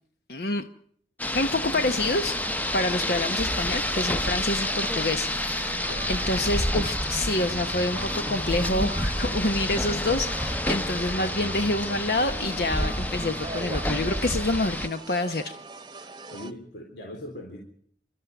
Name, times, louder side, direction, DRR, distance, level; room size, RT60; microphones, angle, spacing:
voice 1, 0.3-0.6 1.3-2.4 2.7-15.5, left 2 dB, 60° left, 7 dB, 1.0 m, -27 dB
Rain, 1.2-14.9, left 1 dB, 10° left, 0.8 m, -29 dB
sound 1, 1.9-16.5, right 3 dB, 25° right, 1.0 m, -42 dB
voice 2, 16.3-17.6, left 1 dB, 80° left, 0 dB, 3.9 m, -40 dB
28.5 x 13.0 x 9.2 m, 0.65 s
head